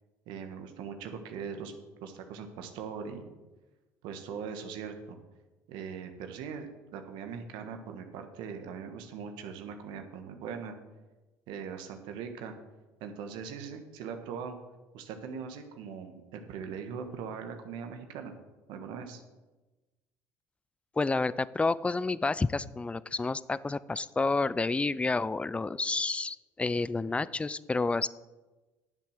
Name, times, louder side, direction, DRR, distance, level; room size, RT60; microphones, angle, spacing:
voice 1, 0.3-1.7 2.0-3.3 4.0-5.2 5.7-10.7 11.5-12.6 13.0-14.6 14.9-18.3 18.7-19.2, right 6 dB, 75° right, 6 dB, 1.4 m, -40 dB
voice 2, 21.0-28.1, left 3 dB, 15° left, 18 dB, 0.4 m, -29 dB
10.5 x 7.4 x 6.5 m, 1.1 s
supercardioid pair, 90°, 8 cm